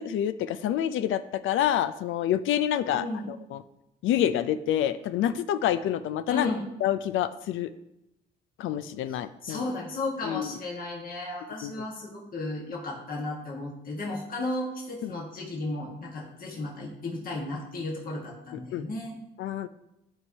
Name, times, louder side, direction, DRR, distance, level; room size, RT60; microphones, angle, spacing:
voice 1, 0.0-3.6 4.0-6.5 6.8-7.7 8.6-9.6 10.2-10.6 11.6-11.9 15.0-15.1 18.7-18.8 19.4-19.7, left 11 dB, 80° left, 13 dB, 0.4 m, -27 dB
voice 2, 2.9-3.3 6.3-6.7 9.1-19.2, left 2 dB, 45° left, -3 dB, 1.6 m, -34 dB
11.5 x 4.7 x 2.8 m, 0.86 s
cardioid pair, 90°, 20 cm